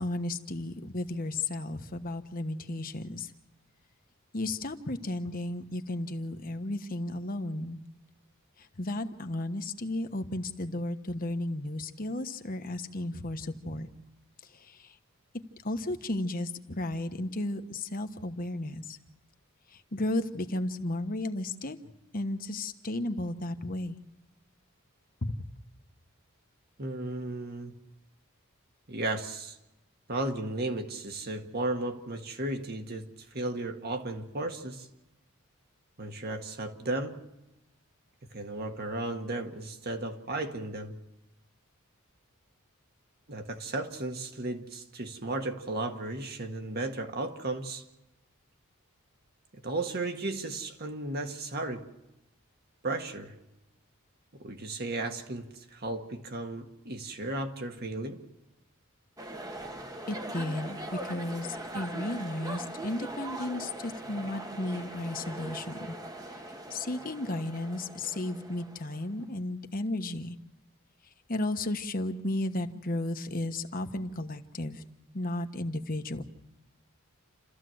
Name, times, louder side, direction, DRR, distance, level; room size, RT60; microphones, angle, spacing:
voice 1, 0.0-3.3 4.3-7.8 8.6-13.9 14.5-14.9 15.6-19.0 19.7-21.8 22.1-24.0 25.2-25.4 60.1-66.0 66.7-70.4 71.3-74.8 75.1-76.2, left 1 dB, 40° left, 1.2 m, -34 dB
voice 2, 26.8-27.7 28.9-29.6 30.1-34.9 36.0-37.2 38.3-41.0 43.3-47.8 49.6-51.9 52.8-53.3 54.3-58.2, right 2 dB, 45° right, 1.7 m, -35 dB
sound 1, 59.2-69.0, right 1 dB, 15° right, 1.3 m, -41 dB
29.0 x 14.0 x 7.9 m
head